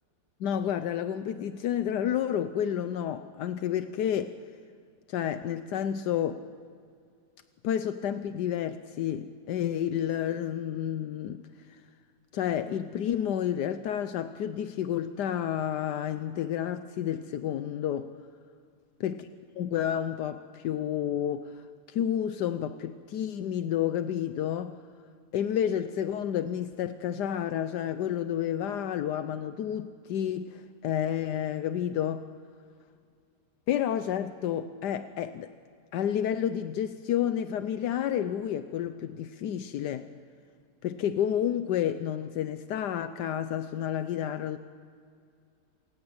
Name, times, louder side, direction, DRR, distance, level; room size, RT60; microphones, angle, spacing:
voice 1, 0.4-4.4 5.1-6.4 7.6-11.4 11.7-11.8 12.3-18.1 19.0-19.3 19.6-24.8 25.3-32.2 33.7-35.5 35.9-40.1 40.8-44.6, left 10 dB, 80° left, 11 dB, 1.3 m, -30 dB
28.0 x 15.5 x 8.7 m, 2.3 s
omnidirectional pair, 1.8 m